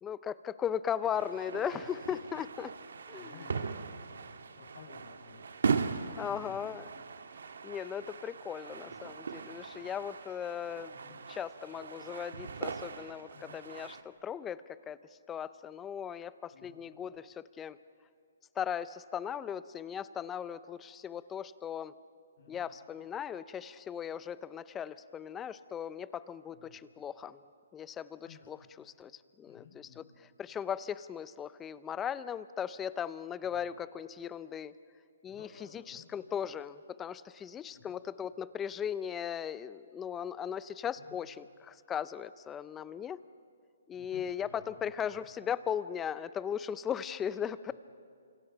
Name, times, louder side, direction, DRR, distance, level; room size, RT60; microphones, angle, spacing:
voice 1, 0.0-2.7 3.1-3.3 6.2-6.9 7.6-10.9 11.3-15.0 15.3-17.8 18.6-21.9 22.5-27.4 27.7-29.1 29.4-30.0 30.4-34.7 35.2-35.5 35.7-43.2 43.9-47.7, left 8 dB, 10° left, 16 dB, 0.5 m, -38 dB
sound 1, 1.0-14.0, right 5 dB, 75° right, 1.5 m, -39 dB
voice 2, 3.2-5.6 6.3-6.6 8.8-9.1 10.9-11.2 13.3-13.6 16.5-16.8 22.4-22.6 26.5-26.8 28.2-28.7 29.5-30.1 33.4-33.7 35.3-36.1 37.7-37.9 41.0-41.2 43.9-45.3 47.7-47.8, left 5 dB, 60° left, 1 dB, 7.4 m, -56 dB
29.5 x 27.0 x 5.9 m, 2.3 s
hypercardioid pair, 160°, 0 cm